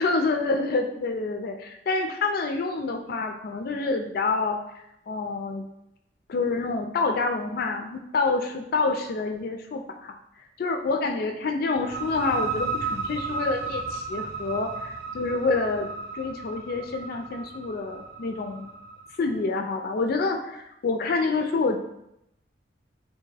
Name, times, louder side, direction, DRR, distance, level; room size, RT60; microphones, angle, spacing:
voice 1, 0.0-4.6 5.1-5.6 6.3-10.1 10.6-15.9 16.1-18.7 19.2-21.8, left 3 dB, 55° left, 5 dB, 0.3 m, -27 dB
sound 1, 11.7-19.2, right 4 dB, 60° right, 0.7 m, -34 dB
3.4 x 2.6 x 3.3 m, 0.82 s
head